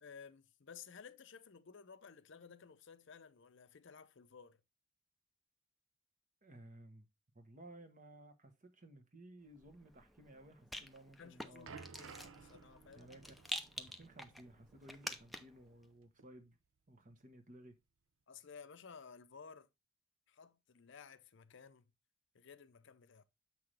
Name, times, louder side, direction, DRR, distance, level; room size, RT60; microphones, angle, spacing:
voice 1, 0.0-4.6 11.2-13.1 18.3-19.7 20.3-21.9 22.3-23.2, left 6 dB, 60° left, 0.6 m, -56 dB
voice 2, 6.4-7.1 7.3-11.8 12.9-13.4 13.8-16.6 16.9-17.8, right 1 dB, 40° right, 1.2 m, -57 dB
Rattle, 9.6-15.7, left 1 dB, ahead, 0.6 m, -48 dB
sound 1, 11.1-15.9 16.2-16.4 17.1-17.2, right 5 dB, 70° right, 0.6 m, -57 dB
7.5 x 5.9 x 3.2 m
head